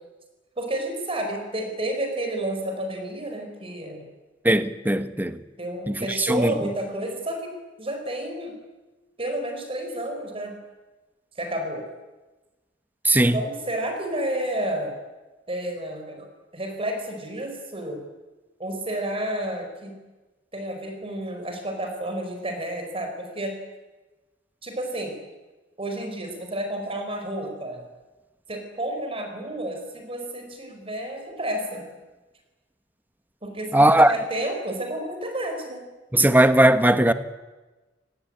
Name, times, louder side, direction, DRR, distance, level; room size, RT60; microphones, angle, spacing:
voice 1, 0.6-4.1 5.6-8.6 9.2-10.6 11.3-11.9 13.2-15.0 15.5-18.0 18.6-20.0 20.5-23.6 24.6-25.2 25.8-27.8 28.5-31.9 33.4-35.9, right 1 dB, 30° right, 4.6 m, -31 dB
voice 2, 4.4-5.4 5.9-6.5 13.0-13.4 33.7-34.1 36.1-37.1, right 1 dB, 10° right, 1.2 m, -18 dB
28.5 x 19.5 x 8.7 m
head